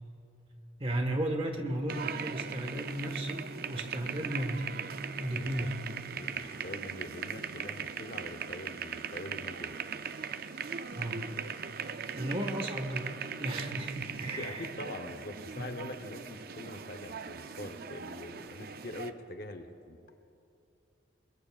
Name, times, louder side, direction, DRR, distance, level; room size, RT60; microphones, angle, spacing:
voice 1, 0.8-4.8 5.2-5.8 10.9-11.3 12.1-14.7 15.6-15.7, right 1 dB, 30° right, 4 dB, 1.3 m, -34 dB
sound 1, 1.9-19.1, right 7 dB, 50° right, 0.5 m, -40 dB
voice 2, 5.3-5.7 6.1-9.8 14.3-20.0, left 1 dB, 50° left, 7 dB, 0.8 m, -44 dB
22.0 x 21.0 x 2.4 m, 2.8 s
head